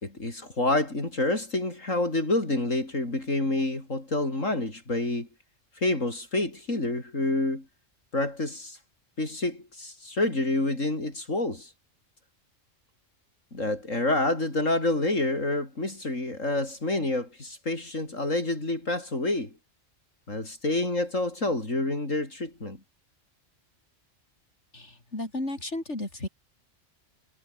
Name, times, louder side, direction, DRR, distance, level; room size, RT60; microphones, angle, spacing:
voice 1, 0.0-5.3 5.8-7.7 8.1-8.8 9.2-11.7 13.5-19.5 20.3-22.8, left 2 dB, 80° left, 6.3 m, -28 dB
voice 2, 24.7-26.3, left 2 dB, 65° left, 7.0 m, -33 dB
omnidirectional pair, 1.3 m